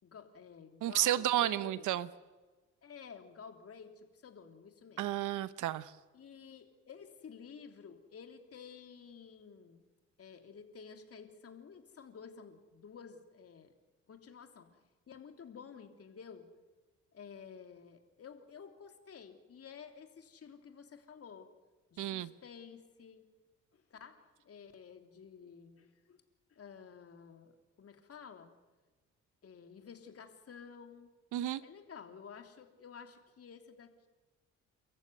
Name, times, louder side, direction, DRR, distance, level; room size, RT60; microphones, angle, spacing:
voice 1, 0.0-2.0 2.8-5.1 6.1-9.8 10.2-13.7 14.1-14.7 15.1-16.5 17.1-21.5 21.9-23.2 23.7-26.2 26.5-28.6 29.4-31.1 31.6-34.1, left 6 dB, 50° left, 6 dB, 3.3 m, -52 dB
voice 2, 0.8-2.1 5.0-5.9 22.0-22.3 31.3-31.6, right 13 dB, 85° right, 15 dB, 1.1 m, -32 dB
29.5 x 14.5 x 9.4 m, 1.2 s
cardioid pair, 90°, 30 cm